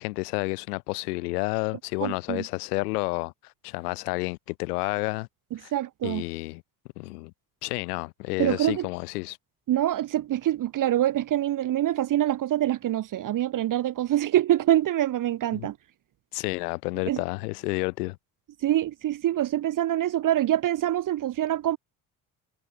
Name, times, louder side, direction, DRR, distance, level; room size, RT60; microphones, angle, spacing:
voice 1, 0.0-5.3 5.6-5.7 6.0-6.6 7.0-7.3 7.6-9.4 15.5-15.7 16.3-18.2, left 24 dB, 90° left, 0.6 m, -30 dB
voice 2, 2.0-2.4 5.7-6.2 8.4-8.9 9.7-15.8 17.1-17.2 18.6-21.8, right 12 dB, 45° right, 0.7 m, -25 dB
hypercardioid pair, 50°, 44 cm